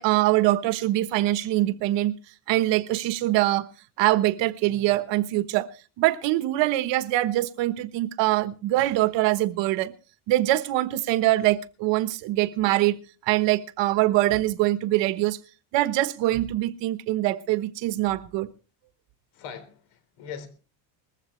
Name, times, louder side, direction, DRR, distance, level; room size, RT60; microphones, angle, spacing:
voice 1, 0.0-2.1 2.5-3.7 4.0-5.7 6.0-9.9 10.3-13.0 13.3-15.4 15.7-18.5, right 16 dB, 65° right, 1.2 m, -23 dB
voice 2, 19.3-20.5, left 7 dB, 90° left, 3.9 m, -40 dB
20.5 x 15.0 x 3.2 m
cardioid pair, 175°, 46 cm